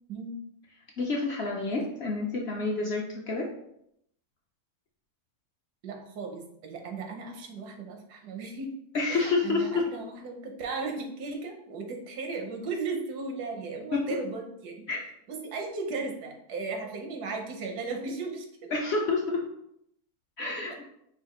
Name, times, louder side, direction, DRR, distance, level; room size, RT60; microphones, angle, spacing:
voice 1, 1.0-3.5 8.9-9.8 14.9-15.0 18.7-19.4 20.4-20.8, left 3 dB, 65° left, -1 dB, 0.7 m, -28 dB
voice 2, 5.8-8.7 9.1-14.9 15.3-18.7, right 4 dB, 85° right, 3 dB, 1.4 m, -36 dB
4.8 x 2.3 x 4.2 m, 0.76 s
omnidirectional pair, 1.7 m